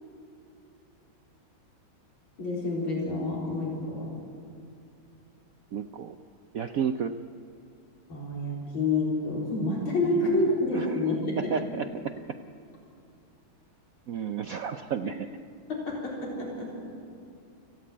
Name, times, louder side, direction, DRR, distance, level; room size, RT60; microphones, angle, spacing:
voice 1, 2.4-4.1 8.1-11.5 15.0-15.1 15.7-16.7, left 2 dB, 75° left, -3 dB, 4.8 m, -28 dB
voice 2, 5.7-6.2 6.5-7.2 10.2-10.5 10.7-11.9 12.3-12.4 14.1-15.3, right 7 dB, 75° right, 8 dB, 0.8 m, -32 dB
25.0 x 16.0 x 8.5 m, 2.6 s
omnidirectional pair, 2.2 m